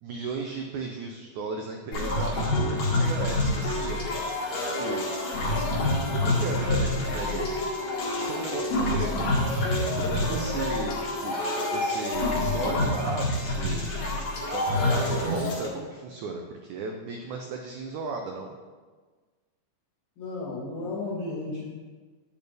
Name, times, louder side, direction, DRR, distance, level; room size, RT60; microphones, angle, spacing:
voice 1, 0.0-4.0 4.5-5.1 6.1-7.7 8.2-11.4 11.7-14.0 14.5-18.6, right 4 dB, 80° right, 2 dB, 1.7 m, -36 dB
sound 1, 1.9-15.7, left 1 dB, 50° left, 2.2 m, -27 dB
sound 2, 2.5-9.4 9.6-13.2 13.9-14.1, left 2 dB, 85° left, 2.5 m, -39 dB
voice 2, 20.2-21.7, left 2 dB, 70° left, -5 dB, 3.5 m, -33 dB
8.7 x 8.6 x 3.4 m, 1.4 s
omnidirectional pair, 4.2 m